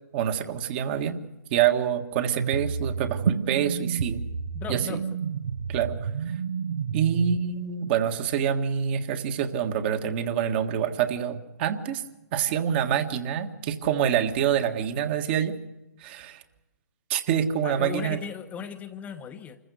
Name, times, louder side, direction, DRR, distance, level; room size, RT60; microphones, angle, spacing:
voice 1, 0.1-1.2 1.5-4.2 4.7-4.8 5.7-5.9 6.9-12.0 12.3-15.6 16.0-16.4 17.1-18.2, right 8 dB, 35° right, 7 dB, 1.7 m, -26 dB
sound 1, 2.4-7.4, right 6 dB, 65° right, 1.0 m, -30 dB
voice 2, 4.5-5.0 17.6-19.6, left 7 dB, 15° left, 6 dB, 1.1 m, -37 dB
26.5 x 15.0 x 8.1 m, 1.0 s
figure-of-eight pair, 130°, 9 cm